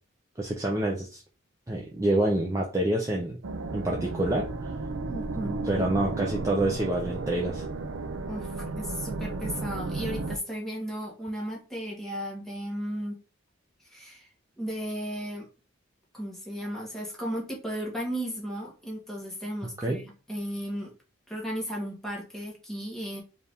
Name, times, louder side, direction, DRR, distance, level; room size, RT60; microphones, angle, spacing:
voice 1, 0.4-1.2 1.7-3.4 3.7-4.7 5.7-7.6 19.8-20.0, right 1 dB, 15° right, -2 dB, 0.5 m, -27 dB
sound 1, 3.4-10.4, right 3 dB, 85° right, 0.5 m, -34 dB
voice 2, 5.1-5.6 8.3-13.2 13.8-14.3 14.6-15.5 16.1-20.9 21.3-23.2, equal, ahead, -3 dB, 1.2 m, -35 dB
4.5 x 2.6 x 3.5 m, 0.33 s
head